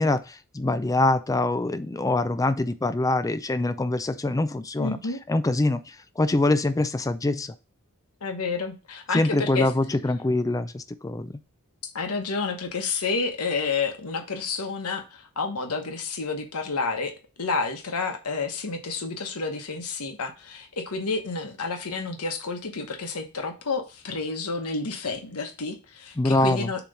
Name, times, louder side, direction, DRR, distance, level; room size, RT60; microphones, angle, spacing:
voice 1, 0.0-5.0 5.3-7.5 9.1-11.3 26.2-26.7, left 2 dB, 15° left, 11 dB, 0.4 m, -24 dB
voice 2, 4.8-5.2 8.2-9.7 11.9-17.1 17.4-26.8, left 4 dB, 80° left, 4 dB, 1.1 m, -30 dB
7.1 x 3.0 x 5.3 m, 0.31 s
head